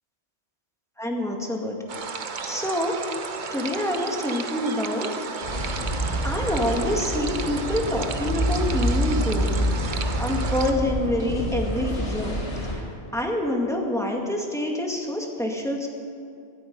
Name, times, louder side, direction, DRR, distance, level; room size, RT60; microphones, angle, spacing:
voice 1, 1.0-1.8 2.4-2.9 3.5-5.1 6.2-9.6 9.9-12.4 12.7-12.8 13.1-15.9, left 1 dB, 5° left, 0 dB, 2.0 m, -27 dB
sound 1, 1.9-10.7, right 5 dB, 45° right, 0.9 m, -34 dB
sound 2, 5.4-12.8, equal, 70° left, 4.7 m, -27 dB
19.5 x 13.0 x 5.5 m, 2.5 s
omnidirectional pair, 1.2 m